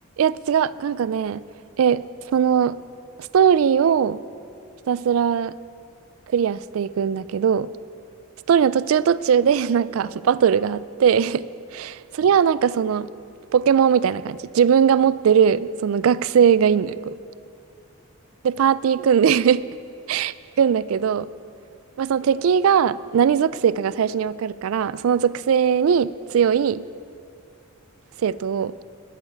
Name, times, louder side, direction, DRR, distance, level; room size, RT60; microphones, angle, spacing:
voice 1, 0.2-1.4 1.8-2.0 2.3-2.7 3.3-4.2 4.9-5.5 6.3-7.7 8.5-11.4 11.7-13.1 13.5-17.1 18.4-19.6 20.1-20.3 20.6-21.3 22.0-26.8 28.2-28.7, right 7 dB, 85° right, 19 dB, 0.3 m, -19 dB
9.4 x 9.0 x 9.5 m, 2.4 s
head